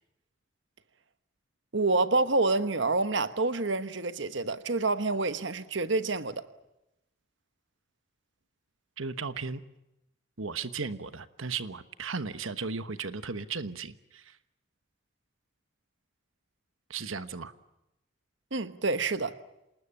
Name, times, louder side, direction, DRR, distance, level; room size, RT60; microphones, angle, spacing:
voice 1, 1.7-6.4 18.5-19.4, right 3 dB, 65° right, 1.2 m, -27 dB
voice 2, 9.0-9.6 10.4-14.4 16.9-17.5, right 4 dB, 90° right, 1.2 m, -36 dB
27.0 x 20.0 x 8.7 m
head